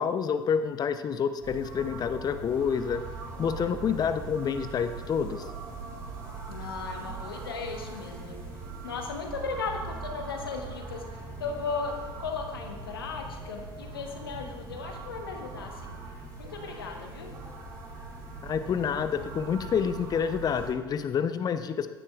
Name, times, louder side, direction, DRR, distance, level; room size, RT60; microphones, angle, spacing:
voice 1, 0.0-3.0 3.4-5.4 18.4-21.9, left 7 dB, 35° left, 10 dB, 0.7 m, -28 dB
sound 1, 1.4-20.7, right 3 dB, 30° right, 3.4 m, -41 dB
voice 2, 6.5-8.4 8.8-11.0 11.4-11.9 12.2-16.0 16.4-17.3, left 4 dB, 80° left, 3 dB, 1.3 m, -36 dB
16.0 x 9.9 x 2.4 m, 1.2 s
figure-of-eight pair, 65°, 12 cm